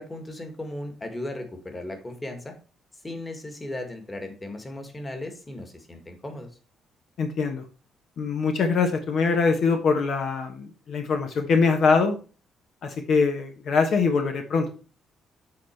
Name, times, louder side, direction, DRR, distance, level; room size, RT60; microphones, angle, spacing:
voice 1, 0.0-2.5 3.0-6.5, left 1 dB, 20° left, 6 dB, 1.8 m, -36 dB
voice 2, 7.2-7.6 8.2-12.2 12.8-14.7, left 4 dB, 65° left, 5 dB, 1.1 m, -23 dB
8.3 x 4.0 x 4.5 m, 0.36 s
cardioid pair, 90°, 0 cm